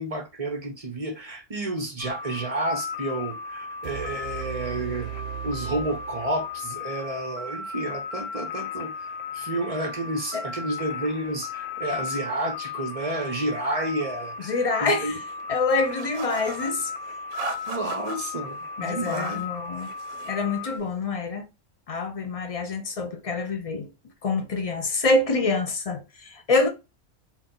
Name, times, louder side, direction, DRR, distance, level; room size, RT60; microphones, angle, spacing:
voice 1, 0.0-5.1 5.4-15.1 17.7-19.5, right 1 dB, 35° right, 0.6 m, -31 dB
sound 1, 2.0-20.8, left 5 dB, 65° left, 1.1 m, -36 dB
sound 2, 3.8-6.8, right 11 dB, 65° right, 0.9 m, -37 dB
voice 2, 14.4-15.2 15.5-16.9 18.8-19.9 20.2-21.5 21.9-23.9 24.2-26.7, left 3 dB, 40° left, 0.5 m, -26 dB
sound 3, 15.9-16.7 17.3-18.2 18.8-19.5 19.8-20.4, right 3 dB, 90° right, 1.2 m, -36 dB
4.1 x 2.3 x 3.8 m
omnidirectional pair, 1.4 m